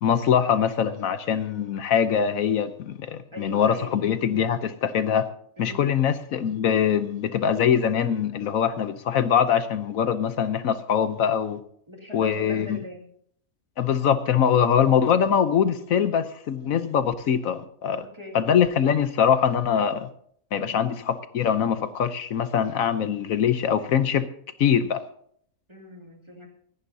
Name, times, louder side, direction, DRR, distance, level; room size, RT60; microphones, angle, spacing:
voice 1, 0.0-5.3 5.6-11.6 12.1-12.8 13.8-18.0 18.3-20.1 20.5-24.2 24.6-25.0, left 8 dB, 75° left, 1.2 m, -23 dB
voice 2, 3.3-4.1 5.6-5.9 11.9-13.1 18.0-18.4 20.5-20.8 25.7-26.5, left 1 dB, 20° right, 2.5 m, -41 dB
25.5 x 11.0 x 2.7 m
omnidirectional pair, 1.5 m